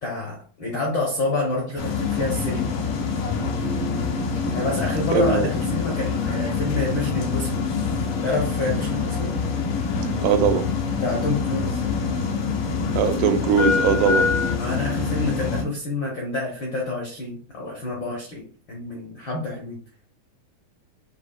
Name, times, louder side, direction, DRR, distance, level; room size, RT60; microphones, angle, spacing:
voice 1, 0.0-2.7 4.5-7.7 8.2-9.3 11.0-11.8 14.6-19.8, left 2 dB, 70° left, -2 dB, 1.1 m, -28 dB
sound 1, 1.8-15.6, left 5 dB, 90° left, 2.5 m, -25 dB
sound 2, 3.4-15.3, right 1 dB, 45° right, 0.6 m, -37 dB
voice 2, 5.1-5.5 10.2-10.7 12.9-14.3, right 7 dB, 90° right, 7 dB, 2.1 m, -20 dB
7.2 x 2.8 x 2.3 m, 0.42 s
omnidirectional pair, 3.6 m